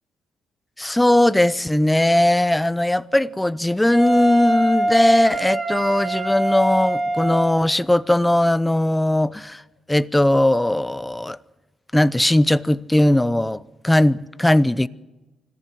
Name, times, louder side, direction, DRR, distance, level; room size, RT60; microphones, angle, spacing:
voice 1, 0.8-9.6 9.9-11.4 11.9-14.9, left 1 dB, 10° left, 0.7 m, -19 dB
Wind instrument woodwind instrument, 3.9-7.7, right 1 dB, 20° right, 3.2 m, -23 dB
25.0 x 15.0 x 7.7 m
cardioid pair, 90°, 0 cm